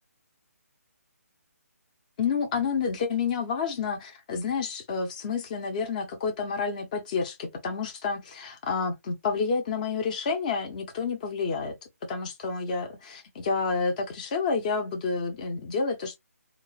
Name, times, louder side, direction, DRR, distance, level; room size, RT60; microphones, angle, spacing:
voice 1, 2.2-11.8 12.0-16.2, left 5 dB, 30° left, 0.9 m, -29 dB
3.8 x 2.5 x 3.1 m
figure-of-eight pair, 150°, 9 cm